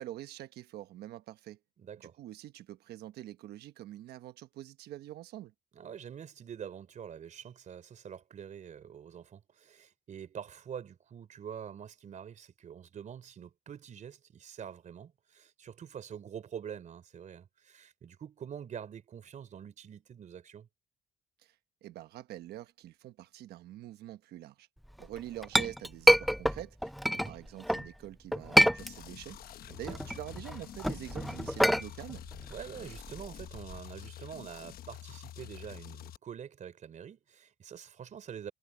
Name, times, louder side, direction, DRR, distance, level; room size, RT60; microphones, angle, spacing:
voice 1, 0.0-1.6 2.0-5.5 21.4-21.5 21.8-24.7 25.0-29.4 29.8-32.2, right 14 dB, 75° right, 1.1 m, -45 dB
voice 2, 1.8-2.2 5.7-20.7 27.1-27.4 29.7-29.8 32.5-38.5, right 8 dB, 45° right, 4.0 m, -46 dB
Chink clink, 25.0-27.9 28.3-29.4 29.7-33.8, equal, ahead, 0.4 m, -27 dB
sound 1, 28.8-36.2, left 12 dB, 60° left, 1.1 m, -48 dB
cardioid pair, 110°, 17 cm